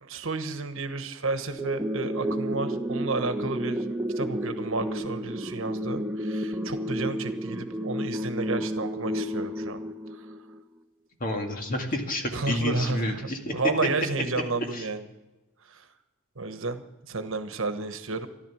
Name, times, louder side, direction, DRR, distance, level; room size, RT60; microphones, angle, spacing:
voice 1, 0.0-3.8 4.2-9.8 10.1-10.3 12.3-15.1 15.7-15.9 16.4-18.3, right 3 dB, 60° right, 9 dB, 1.2 m, -32 dB
sound 1, 1.6-10.6, equal, 10° right, 0.9 m, -31 dB
voice 2, 11.2-13.5 14.7-14.8, left 1 dB, 40° left, 3 dB, 2.1 m, -30 dB
14.0 x 12.0 x 7.3 m, 1.0 s
head